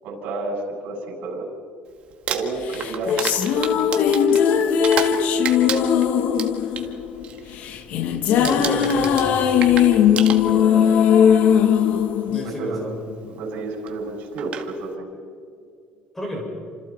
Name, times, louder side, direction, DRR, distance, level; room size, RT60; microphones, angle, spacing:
voice 1, 0.0-1.5 2.3-3.7 10.5-10.9 12.4-12.8 13.2-15.1, right 2 dB, 65° right, 0 dB, 7.8 m, -31 dB
Crumpling crinkling, 2.1-5.2 5.4-6.9 7.2-7.5 7.8-8.1 8.4-10.8 11.8-11.9 13.9-14.0 14.4-14.7, right 8 dB, 40° right, 1.8 m, -30 dB
sound 1, 2.7-13.1, left 8 dB, 50° left, 1.4 m, -19 dB
voice 2, 8.4-9.4 12.3-13.0 16.1-16.4, equal, 5° left, -2 dB, 6.7 m, -30 dB
29.5 x 27.0 x 4.5 m, 2.3 s
cardioid pair, 170°, 3 cm